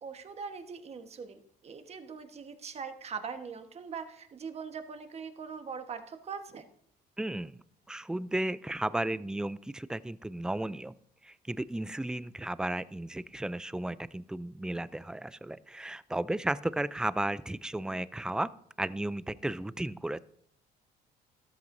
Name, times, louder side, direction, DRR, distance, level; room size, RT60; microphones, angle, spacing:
voice 1, 0.0-6.7, right 6 dB, 40° right, 7 dB, 1.3 m, -41 dB
voice 2, 7.2-7.6 7.9-10.9 11.2-18.5 18.8-20.2, right 1 dB, 5° right, 17 dB, 0.4 m, -34 dB
13.0 x 13.0 x 2.6 m, 0.68 s
cardioid pair, 110°, 17 cm